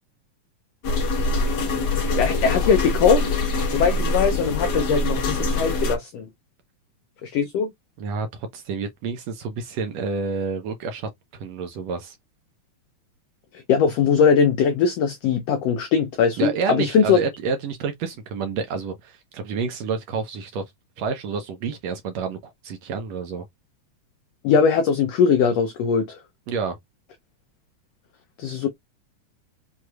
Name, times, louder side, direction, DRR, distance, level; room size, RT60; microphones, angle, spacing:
sound 1, 0.8-5.9, left 2 dB, 65° left, 1.0 m, -24 dB
voice 1, 1.9-6.3 7.2-7.7 13.5-17.2 24.4-26.2 28.4-28.7, left 6 dB, 85° left, 1.4 m, -21 dB
voice 2, 8.0-12.2 16.4-20.6 21.0-23.4 26.5-26.8, right 5 dB, 75° right, 1.6 m, -29 dB
6.2 x 2.7 x 2.2 m
omnidirectional pair, 3.5 m